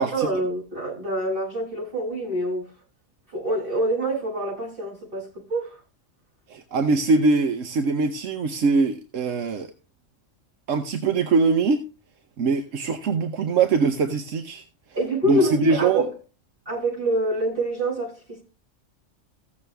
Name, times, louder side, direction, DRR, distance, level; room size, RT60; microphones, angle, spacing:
voice 1, 0.0-2.7 3.3-5.8 14.9-16.1 16.6-18.4, right 1 dB, 45° right, 8.4 m, -26 dB
voice 2, 6.5-9.7 10.7-11.9 12.4-14.6 15.3-16.1, right 4 dB, 80° right, 1.3 m, -22 dB
15.5 x 7.3 x 3.4 m
omnidirectional pair, 1.3 m